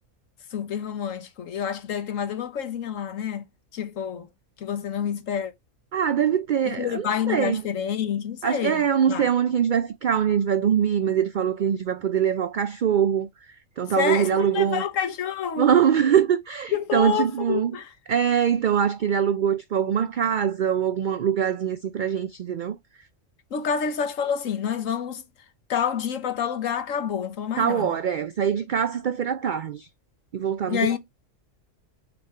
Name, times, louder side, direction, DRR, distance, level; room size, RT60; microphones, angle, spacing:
voice 1, 0.5-3.4 3.7-4.3 4.6-5.5 6.6-8.8 9.1-9.3 14.0-15.7 16.7-17.9 23.5-25.2 25.7-28.0 30.7-31.0, left 8 dB, 75° left, 1.3 m, -28 dB
voice 2, 5.9-7.6 8.4-13.3 13.8-14.8 15.6-17.7 18.1-22.8 27.6-29.9 30.3-30.8, right 8 dB, 65° right, 0.4 m, -23 dB
6.8 x 3.4 x 4.3 m
omnidirectional pair, 1.4 m